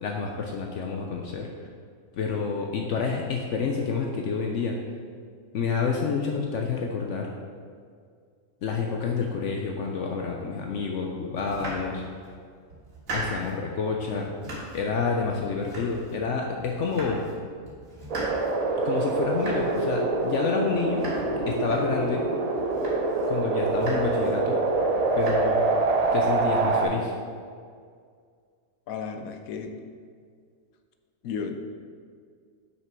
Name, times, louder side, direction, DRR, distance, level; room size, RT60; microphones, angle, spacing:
voice 1, 0.0-1.5 2.2-4.8 5.5-7.3 8.6-12.0 13.1-14.4 14.7-17.2 18.8-21.0 21.5-22.2 23.3-24.6 25.2-25.6 26.1-27.1, left 5 dB, 65° left, 1 dB, 0.9 m, -28 dB
Domestic sounds home sounds, 11.4-12.3 12.7-13.6 14.0-14.9 15.2-16.3 16.6-17.4 17.6-22.2 22.6-23.3 23.6-24.3 24.7-25.3, right 1 dB, 70° right, 2.1 m, -39 dB
sound 1, 18.1-26.8, right 3 dB, 45° right, 0.5 m, -25 dB
voice 2, 28.9-29.7 31.2-31.6, left 6 dB, 85° left, 6 dB, 1.1 m, -33 dB
6.1 x 5.9 x 4.4 m, 2.1 s
omnidirectional pair, 1.4 m